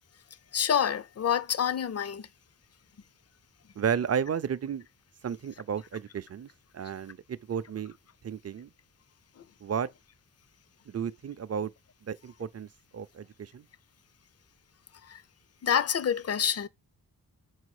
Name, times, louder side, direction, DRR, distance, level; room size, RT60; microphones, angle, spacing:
voice 1, 0.5-2.3 15.1-15.2 15.6-16.7, left 8 dB, 40° left, 0.5 m, -27 dB
voice 2, 3.8-4.9 5.2-8.0 8.2-8.7 9.6-9.9 10.9-11.7 12.0-12.7 12.9-13.7, right 7 dB, 40° right, 0.5 m, -33 dB
6.3 x 4.8 x 4.8 m
wide cardioid pair, 155°, 38 cm